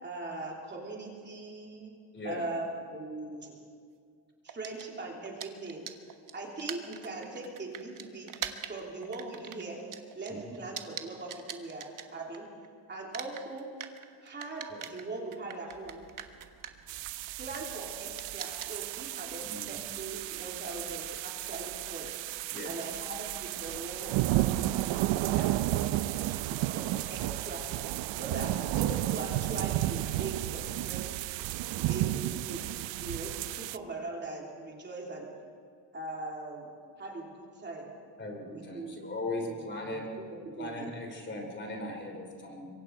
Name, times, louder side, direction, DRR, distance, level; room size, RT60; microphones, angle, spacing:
voice 1, 0.0-1.9 2.2-3.5 4.4-5.8 6.3-8.3 8.7-9.8 10.1-12.5 12.9-13.7 14.2-16.0 17.4-22.1 22.6-24.1 25.2-25.8 26.2-27.6 28.1-31.1 31.7-32.6 33.0-35.3 35.9-36.7 37.0-37.9 38.5-39.0 39.5-40.2 40.6-40.9, right 2 dB, 25° right, -1 dB, 3.3 m, -40 dB
voice 2, 2.1-2.5 10.3-10.4 14.7-14.8 19.4-19.8 22.5-22.7 38.2-40.1 40.6-42.7, left 2 dB, 25° left, 2 dB, 3.2 m, -38 dB
sound 1, 4.5-12.7 12.9-21.2, right 9 dB, 45° right, 1.3 m, -44 dB
sound 2, 16.9-33.8, right 15 dB, 75° right, 0.7 m, -32 dB
26.0 x 23.5 x 4.7 m, 2.2 s
cardioid pair, 150°, 45 cm